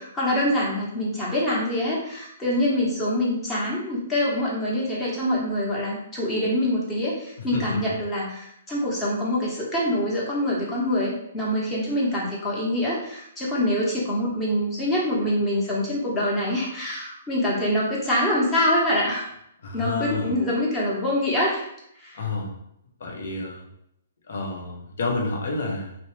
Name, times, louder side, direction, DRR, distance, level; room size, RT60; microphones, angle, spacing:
voice 1, 0.0-19.3 19.7-21.6 22.0-22.2, left 1 dB, 15° left, -5 dB, 1.0 m, -25 dB
voice 2, 7.5-8.0 19.6-20.3 22.1-22.6 23.0-23.7 24.3-26.0, left 3 dB, 65° left, 0 dB, 0.7 m, -29 dB
2.6 x 2.1 x 3.1 m, 0.76 s
hypercardioid pair, 130°, 0 cm